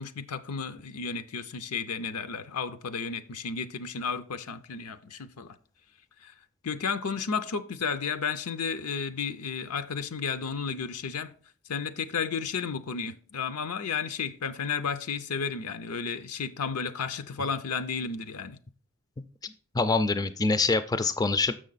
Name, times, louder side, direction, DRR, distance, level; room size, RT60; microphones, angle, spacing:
voice 1, 0.0-5.5 6.2-6.3 6.6-11.3 11.7-18.6, left 5 dB, 85° left, 0.6 m, -33 dB
voice 2, 19.7-21.5, left 3 dB, 15° left, 0.3 m, -25 dB
6.7 x 6.3 x 4.0 m
head